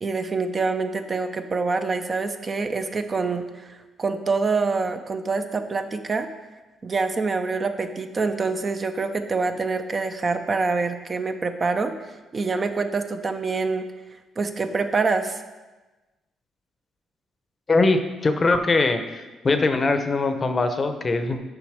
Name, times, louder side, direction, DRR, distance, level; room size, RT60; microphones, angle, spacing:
voice 1, 0.0-6.3 6.8-13.9 14.4-15.4, right 4 dB, 35° right, 8 dB, 0.5 m, -26 dB
voice 2, 17.7-19.0 19.4-21.4, left 3 dB, 35° left, 8 dB, 0.7 m, -21 dB
7.2 x 5.2 x 4.9 m, 1.2 s
cardioid pair, 90°, 0 cm